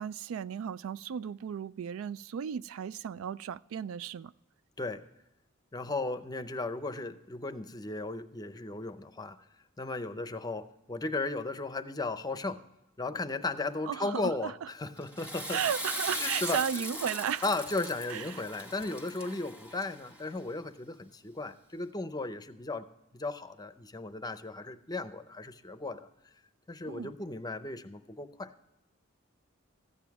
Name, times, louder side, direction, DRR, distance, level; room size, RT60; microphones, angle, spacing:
voice 1, 0.0-4.3 13.9-14.5 15.5-17.4 18.1-18.4 26.9-27.1, right 8 dB, 80° right, 0.3 m, -35 dB
voice 2, 5.7-9.4 9.8-12.7 13.0-15.6 16.1-16.6 17.4-26.1 26.7-28.5, left 2 dB, 20° left, 0.6 m, -36 dB
Water / Toilet flush, 15.0-20.2, equal, 5° right, 1.4 m, -39 dB
14.0 x 9.2 x 4.7 m
head